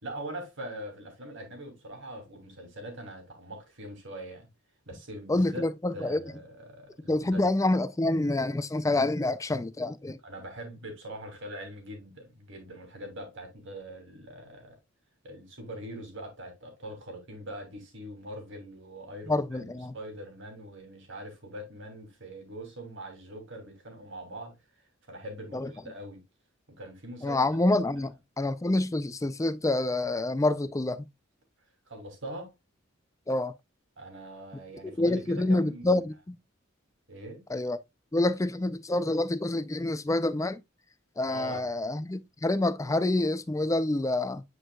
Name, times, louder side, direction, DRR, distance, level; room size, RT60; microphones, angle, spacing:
voice 1, 0.0-4.5 4.9-5.7 5.9-7.5 10.2-14.8 15.2-24.5 25.1-26.2 26.8-27.4 28.0-28.1 31.9-32.5 34.0-36.0 37.1-37.4 41.3-41.7, right 1 dB, 65° right, 2.7 m, -42 dB
voice 2, 5.3-6.2 7.1-10.2 19.3-19.9 25.5-25.7 27.2-31.1 33.3-33.5 35.0-36.4 37.5-37.8 38.1-40.6 41.2-44.4, left 2 dB, 15° left, 0.4 m, -27 dB
8.9 x 4.7 x 2.3 m
head